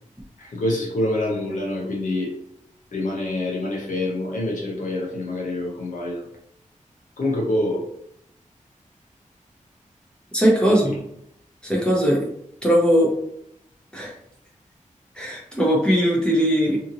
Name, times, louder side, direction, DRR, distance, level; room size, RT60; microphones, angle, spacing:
voice 1, 0.4-2.3 2.9-6.3 7.2-7.8 10.7-11.0, left 1 dB, 70° left, -3 dB, 0.8 m, -26 dB
voice 2, 10.3-10.9 11.6-12.3 12.6-13.1 13.9-14.1 15.1-16.8, equal, 5° left, -4 dB, 0.9 m, -19 dB
2.8 x 2.5 x 2.6 m, 0.72 s
cardioid pair, 60°, 13 cm